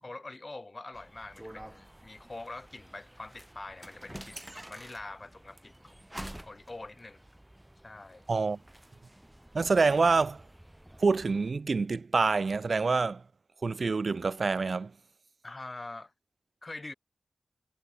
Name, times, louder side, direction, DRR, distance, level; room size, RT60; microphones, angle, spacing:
voice 1, 0.0-5.7 6.4-7.2 7.8-8.2 15.4-16.1 16.6-16.9, left 2 dB, 30° left, 1.8 m, -44 dB
sound 1, 0.9-11.5, right 1 dB, 10° right, 2.8 m, -49 dB
voice 2, 8.3-8.6 9.5-10.4 11.0-13.2 13.6-14.9, right 4 dB, 55° right, 0.4 m, -26 dB
wide cardioid pair, 85°, 0 cm